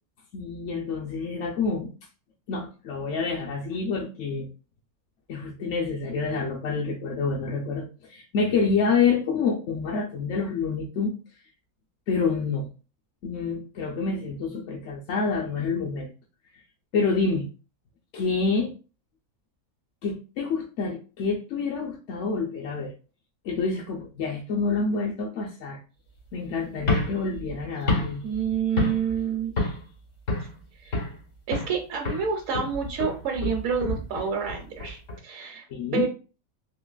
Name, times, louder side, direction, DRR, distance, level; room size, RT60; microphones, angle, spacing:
voice 1, 0.3-1.9 2.5-4.5 5.3-11.1 12.1-12.7 13.2-16.1 16.9-17.5 18.1-18.7 20.0-22.9 23.4-25.8 26.3-28.2 35.7-36.1, left 4 dB, 65° left, 0.8 m, -27 dB
sound 1, 26.8-29.2 29.6-29.9 30.3-31.2 31.5-31.8 32.1-35.2, left 2 dB, 80° left, 2.0 m, -29 dB
voice 2, 28.2-29.5 30.8-31.0 31.5-35.0 35.2-35.6 35.9-36.1, right 7 dB, 75° right, 1.0 m, -28 dB
3.7 x 2.8 x 2.4 m
omnidirectional pair, 1.5 m